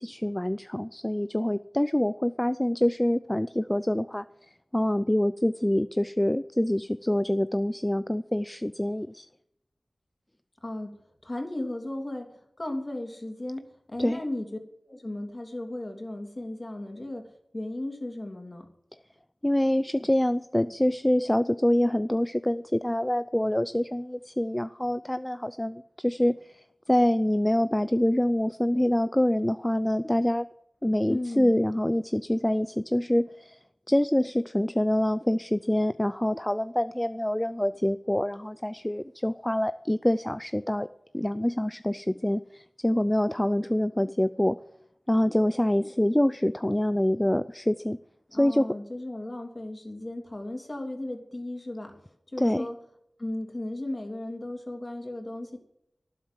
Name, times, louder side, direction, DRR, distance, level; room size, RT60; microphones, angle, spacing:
voice 1, 0.0-4.2 4.7-9.3 14.0-14.2 19.4-26.4 26.9-30.5 30.8-33.6 33.9-40.9 41.1-44.6 45.1-48.0 48.4-48.8 52.4-52.7, left 1 dB, 15° left, 14 dB, 0.4 m, -25 dB
voice 2, 10.6-11.0 11.2-13.6 13.9-14.5 14.9-18.7 31.1-31.6 48.3-52.0 52.3-52.8 53.2-55.6, left 1 dB, 35° left, 4 dB, 3.1 m, -35 dB
12.0 x 10.5 x 7.6 m, 0.76 s
wide cardioid pair, 60°, 0 cm